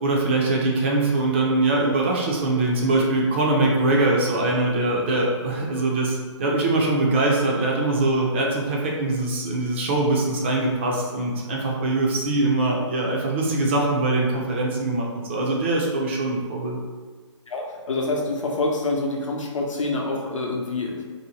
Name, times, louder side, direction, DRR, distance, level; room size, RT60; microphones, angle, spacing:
voice 1, 0.0-16.8, right 2 dB, 25° right, -2 dB, 0.3 m, -22 dB
voice 2, 17.5-21.0, left 2 dB, 85° left, -1 dB, 0.7 m, -26 dB
2.7 x 2.1 x 2.8 m, 1.5 s
hypercardioid pair, 150°, 16 cm